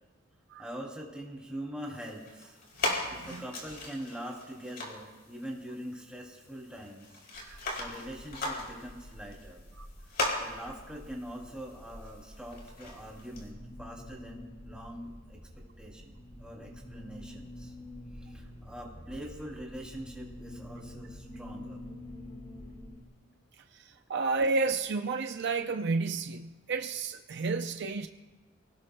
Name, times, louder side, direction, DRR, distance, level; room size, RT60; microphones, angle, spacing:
voice 1, 0.6-2.6 2.8-7.2 7.5-9.6 10.4-17.7 18.1-21.8, equal, 5° right, -1 dB, 2.7 m, -43 dB
sound 1, 1.9-13.5, left 2 dB, 55° left, 4.1 m, -39 dB
voice 2, 2.9-3.5 7.4-7.6 9.8-9.9 23.7-28.1, right 3 dB, 60° right, 7 dB, 0.5 m, -31 dB
sound 2, 7.3-23.0, left 1 dB, 30° left, 2.0 m, -48 dB
27.5 x 18.0 x 2.2 m, 1.2 s
head